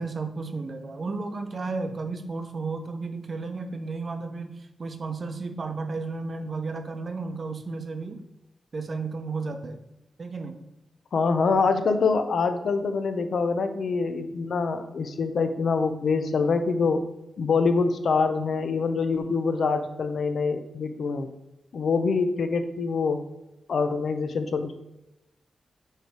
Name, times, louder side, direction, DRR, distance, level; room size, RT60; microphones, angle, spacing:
voice 1, 0.0-8.2 8.7-9.8 10.2-10.6 11.5-11.6, right 3 dB, 45° right, 7 dB, 0.7 m, -33 dB
voice 2, 11.1-17.1 17.4-21.3 21.7-23.2 23.7-24.7, left 4 dB, 70° left, 8 dB, 0.6 m, -25 dB
6.6 x 3.3 x 4.7 m, 0.92 s
cardioid pair, 90°, 0 cm